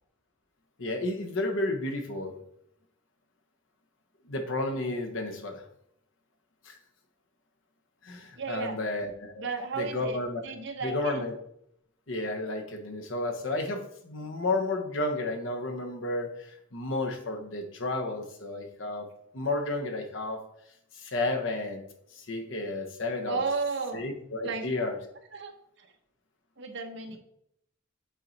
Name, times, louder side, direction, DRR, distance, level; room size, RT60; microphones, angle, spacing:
voice 1, 0.8-2.3 4.2-5.6 6.6-6.8 8.0-9.5 9.8-10.4 10.8-11.3 12.1-19.1 19.3-20.4 20.9-21.8 22.1-23.4 23.9-25.0, left 2 dB, 75° left, 4 dB, 1.1 m, -32 dB
voice 2, 8.4-8.8 9.4-11.2 23.2-24.0 24.4-24.7 25.3-25.5 25.8-25.9 26.6-27.2, right 4 dB, 65° right, 5 dB, 1.0 m, -33 dB
7.5 x 4.4 x 4.1 m, 0.74 s
head